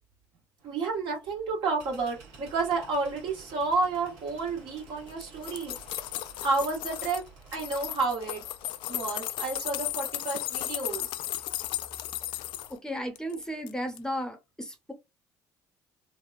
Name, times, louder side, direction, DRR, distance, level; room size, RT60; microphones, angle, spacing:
voice 1, 0.6-5.8 6.4-7.2 7.5-8.4 8.9-11.2, right 3 dB, 60° right, 1.5 m, -30 dB
sound 1, 0.6-12.7, right 3 dB, 75° right, 1.6 m, -53 dB
sound 2, 5.1-7.2 7.5-12.7 13.2-13.7 14.0-14.1, left 14 dB, 70° left, 0.4 m, -35 dB
voice 2, 12.8-14.9, equal, 5° left, 0.8 m, -34 dB
3.3 x 2.2 x 2.5 m
supercardioid pair, 70°, 9 cm